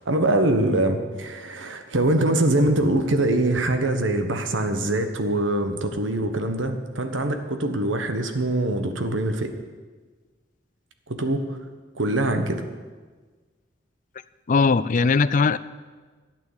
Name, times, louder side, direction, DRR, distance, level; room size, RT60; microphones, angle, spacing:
voice 1, 0.1-9.5 11.1-11.4 11.9-12.6, right 1 dB, 75° right, 7 dB, 1.3 m, -23 dB
voice 2, 14.5-15.6, left 4 dB, 40° left, 15 dB, 0.4 m, -19 dB
13.0 x 9.1 x 8.0 m, 1.4 s
head